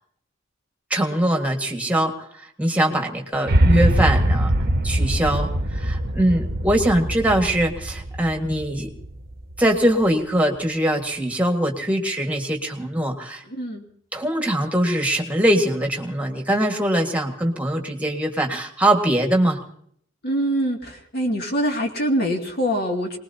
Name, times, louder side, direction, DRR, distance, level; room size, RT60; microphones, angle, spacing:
voice 1, 0.9-4.5 4.8-8.9 9.6-13.4 14.1-19.6, right 1 dB, 5° right, 2 dB, 1.7 m, -22 dB
sound 1, 3.5-9.7, right 1 dB, 50° right, 1.0 m, -22 dB
voice 2, 13.5-13.8 20.2-23.2, equal, 55° left, 2 dB, 2.4 m, -24 dB
25.0 x 20.0 x 2.8 m, 0.64 s
head